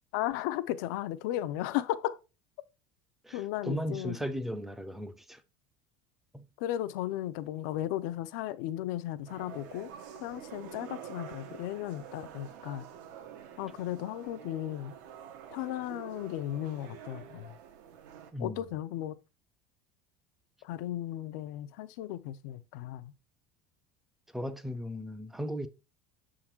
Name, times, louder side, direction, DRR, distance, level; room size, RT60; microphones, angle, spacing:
voice 1, 0.1-2.2 3.3-4.2 6.6-9.9 10.2-12.9 13.6-15.0 15.5-17.6 18.4-19.2 20.6-23.1, left 13 dB, 80° left, 0.5 m, -35 dB
voice 2, 3.2-5.4 6.3-6.4 18.3-18.6 24.3-25.7, equal, 5° right, 0.4 m, -36 dB
sound 1, 9.3-18.3, right 8 dB, 90° right, 1.1 m, -48 dB
7.1 x 3.7 x 4.4 m
cardioid pair, 175°, 10 cm